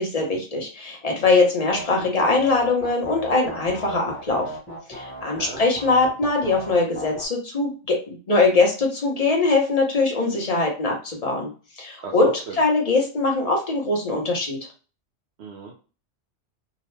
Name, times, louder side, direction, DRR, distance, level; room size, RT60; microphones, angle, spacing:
voice 1, 0.0-4.5 4.9-11.5 11.8-14.6, left 3 dB, 35° left, 0 dB, 0.9 m, -22 dB
sound 1, 1.7-7.3, right 1 dB, 10° left, 1.1 m, -36 dB
voice 2, 12.0-12.5 15.4-15.7, right 4 dB, 70° right, -2 dB, 0.9 m, -37 dB
2.8 x 2.1 x 3.2 m, 0.36 s
omnidirectional pair, 1.2 m